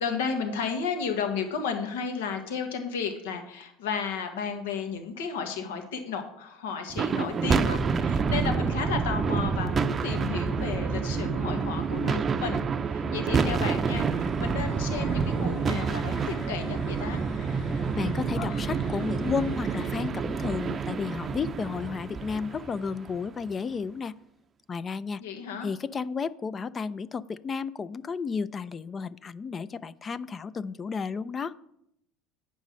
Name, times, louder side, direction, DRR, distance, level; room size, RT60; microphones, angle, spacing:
voice 1, 0.0-17.2 25.2-25.7, left 5 dB, 85° left, 5 dB, 1.2 m, -33 dB
sound 1, 6.9-23.3, right 5 dB, 35° right, 0.5 m, -28 dB
sound 2, 13.9-20.1, left 6 dB, 55° left, 0.9 m, -49 dB
voice 2, 18.0-24.2 24.7-25.2 25.6-31.5, left 5 dB, 30° left, 16 dB, 0.4 m, -32 dB
8.8 x 5.4 x 6.3 m, 0.77 s
hypercardioid pair, 85°, 0 cm